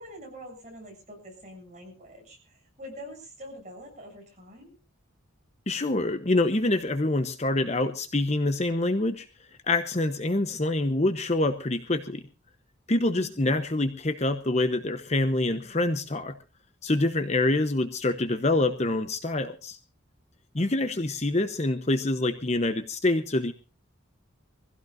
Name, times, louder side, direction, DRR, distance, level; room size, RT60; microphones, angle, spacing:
voice 1, 0.0-4.8 13.1-13.5 20.6-21.0, equal, 35° right, 0 dB, 7.5 m, -45 dB
voice 2, 5.7-9.2 9.7-12.2 12.9-16.3 16.8-19.8 20.5-23.5, left 2 dB, 30° left, 8 dB, 0.9 m, -26 dB
24.5 x 16.0 x 2.6 m, 0.31 s
head